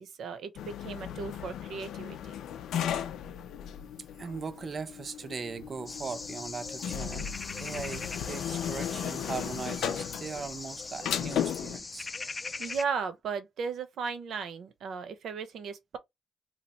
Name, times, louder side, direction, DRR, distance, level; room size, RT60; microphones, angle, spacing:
voice 1, 0.0-2.3 12.6-16.0, right 5 dB, 70° right, 0.8 m, -36 dB
sound 1, 0.6-11.8, left 9 dB, 90° left, 0.5 m, -36 dB
voice 2, 4.2-7.3 7.6-12.1, right 5 dB, 40° right, 0.5 m, -39 dB
sound 2, 5.9-12.8, left 3 dB, 30° left, 0.4 m, -41 dB
2.9 x 2.5 x 4.1 m
cardioid pair, 110°, 0 cm